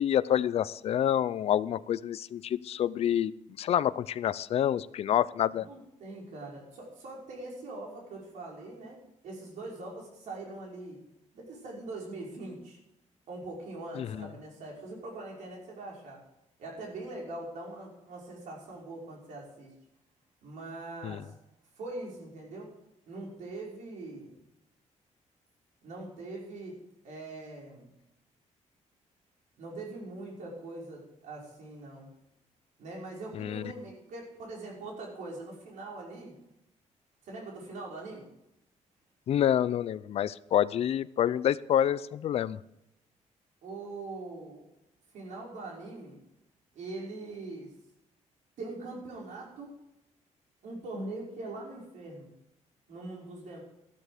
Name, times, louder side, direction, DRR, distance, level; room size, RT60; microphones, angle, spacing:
voice 1, 0.0-3.3 3.6-5.7 14.0-14.3 21.0-21.2 33.3-33.6 39.3-42.6, left 10 dB, 55° left, 17 dB, 0.5 m, -28 dB
voice 2, 5.5-9.0 9.2-11.0 11.3-12.8 13.3-16.2 16.6-19.7 20.4-21.3 21.8-22.7 23.1-24.4 25.8-27.9 29.6-32.1 32.8-36.3 37.2-38.2 43.6-44.7 45.1-46.2 46.7-47.7 48.6-49.7 50.6-52.3 52.9-53.6, right 2 dB, 85° right, -2 dB, 5.6 m, -42 dB
13.5 x 12.5 x 5.1 m, 0.86 s
wide cardioid pair, 170°, 13 cm